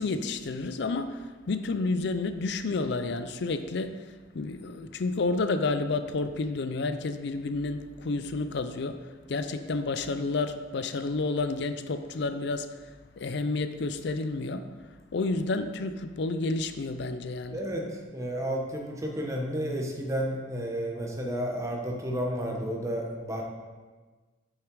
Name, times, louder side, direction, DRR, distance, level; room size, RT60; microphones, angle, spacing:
voice 1, 0.0-17.6, left 3 dB, 65° left, 10 dB, 0.5 m, -30 dB
voice 2, 17.5-23.4, equal, 15° right, 0 dB, 1.2 m, -32 dB
8.6 x 6.5 x 4.7 m, 1.3 s
head